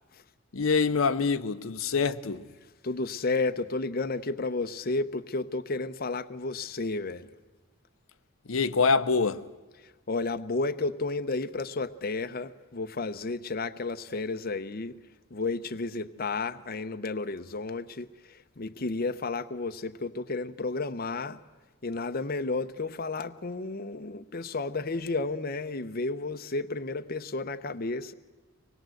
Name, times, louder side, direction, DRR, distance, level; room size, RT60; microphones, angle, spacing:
voice 1, 0.5-2.5 8.5-9.4, left 4 dB, 80° left, 0.8 m, -25 dB
voice 2, 2.8-7.3 9.8-15.0 15.3-21.4 21.8-28.1, left 3 dB, 45° left, 0.7 m, -32 dB
24.5 x 20.0 x 7.8 m
head